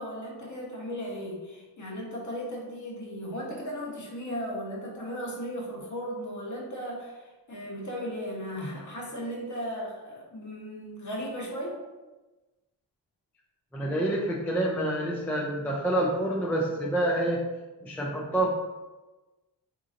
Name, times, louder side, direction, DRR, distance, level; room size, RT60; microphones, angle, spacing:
voice 1, 0.0-11.8, equal, 45° left, -3 dB, 1.0 m, -36 dB
voice 2, 13.7-17.4 17.8-18.5, right 1 dB, 5° left, -3 dB, 0.4 m, -27 dB
3.7 x 2.9 x 2.5 m, 1.2 s
cardioid pair, 110°, 43 cm